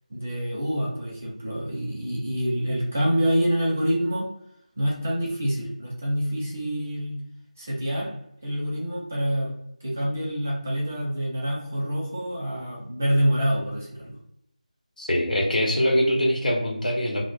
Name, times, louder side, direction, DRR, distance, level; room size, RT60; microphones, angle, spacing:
voice 1, 0.1-4.3 4.8-7.2 7.6-8.1 8.4-9.5 9.8-14.2, equal, 15° right, -4 dB, 0.4 m, -26 dB
voice 2, 15.0-17.2, equal, 85° left, 0 dB, 0.9 m, -23 dB
2.1 x 2.0 x 3.2 m, 0.75 s
figure-of-eight pair, 175°, 4 cm